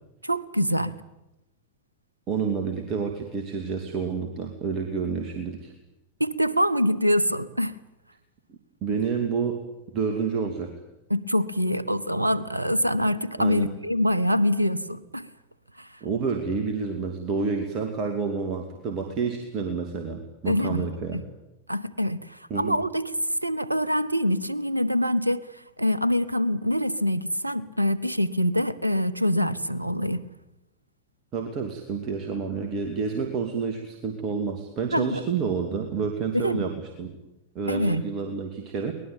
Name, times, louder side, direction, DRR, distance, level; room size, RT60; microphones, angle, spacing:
voice 1, 0.2-1.0 6.2-7.8 11.1-15.3 15.8-15.9 20.5-20.9 21.1-21.2 21.7-23.1 23.4-30.2 34.9-35.2 36.3-36.6 37.7-38.0, equal, 85° right, 1.0 m, -25 dB
voice 2, 2.3-5.7 8.5-9.6 9.9-10.7 13.4-13.7 16.0-21.2 22.5-22.8 31.3-37.1 37.5-38.9, right 5 dB, 35° right, 2.5 m, -29 dB
23.5 x 19.5 x 9.0 m
figure-of-eight pair, 90°, 0 cm